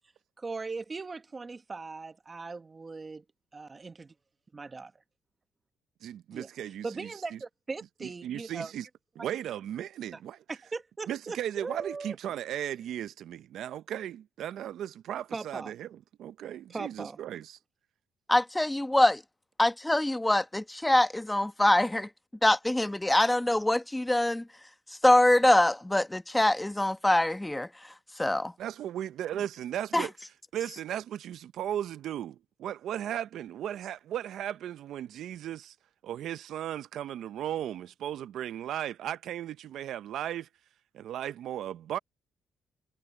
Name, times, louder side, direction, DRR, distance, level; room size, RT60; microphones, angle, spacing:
voice 1, 0.4-3.2 3.5-3.9 4.5-4.9 6.3-6.5 6.8-8.7 10.1-10.2 10.5-12.2 15.3-15.7 16.7-17.2, right 4 dB, 30° right, 1.3 m, -39 dB
voice 2, 6.0-7.4 8.0-8.8 9.2-10.4 11.1-17.6 28.6-30.1 30.5-35.7 36.0-40.5 40.9-42.0, right 11 dB, 75° right, 0.6 m, -36 dB
voice 3, 18.3-19.2 19.6-22.1 22.4-24.4 25.0-27.7 28.2-28.5 29.9-30.1, left 1 dB, 10° left, 1.1 m, -24 dB
cardioid pair, 90°, 0 cm